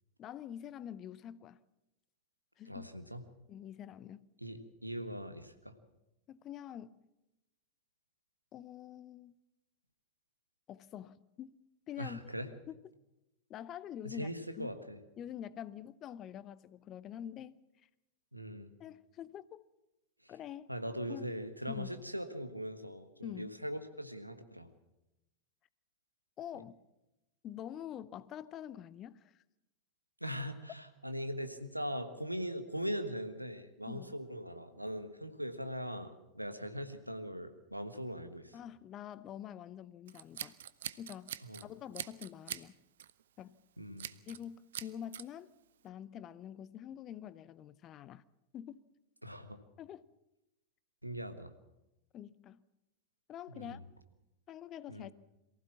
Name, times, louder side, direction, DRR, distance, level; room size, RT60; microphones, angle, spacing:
voice 1, 0.2-1.6 2.6-2.9 3.5-4.3 6.3-7.0 8.5-9.4 10.7-11.6 11.9-12.3 12.7-12.8 13.5-14.3 14.6-14.7 15.2-17.6 18.8-19.7 20.3-20.7 21.1-21.3 21.7-21.9 23.2-23.5 26.4-26.8 27.4-29.4 33.9-34.1 38.5-40.6 41.0-42.8 43.4-43.6 44.3-45.5 45.8-48.2 48.5-48.8 49.8-50.1 52.1-52.6 53.3-53.8 54.5-55.1, left 10 dB, 30° left, 0.7 m, -46 dB
voice 2, 2.7-3.2 4.4-5.7 12.0-12.5 14.0-15.0 18.3-18.7 20.2-20.3 20.7-24.7 30.2-38.6 41.4-41.6 43.8-44.1 49.2-49.6 51.0-51.5 53.5-53.8 54.9-55.1, equal, 90° right, 1.4 m, -41 dB
Scissors, 40.1-41.6 41.9-42.7 43.0-43.2 44.0-44.4 44.7-45.2, right 10 dB, 60° right, 0.7 m, -43 dB
23.0 x 15.5 x 7.3 m
figure-of-eight pair, 90°, 0 cm